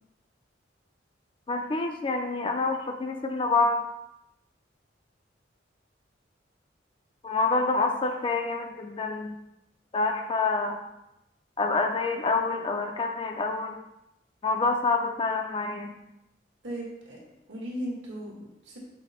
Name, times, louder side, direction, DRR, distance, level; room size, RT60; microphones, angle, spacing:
voice 1, 1.5-3.8 7.2-9.4 9.9-10.8 11.6-13.8 14.4-15.9, left 3 dB, 30° left, 4 dB, 0.3 m, -27 dB
voice 2, 16.6-17.2 17.5-18.8, equal, 75° right, -3 dB, 1.3 m, -37 dB
5.8 x 2.0 x 4.1 m, 0.87 s
head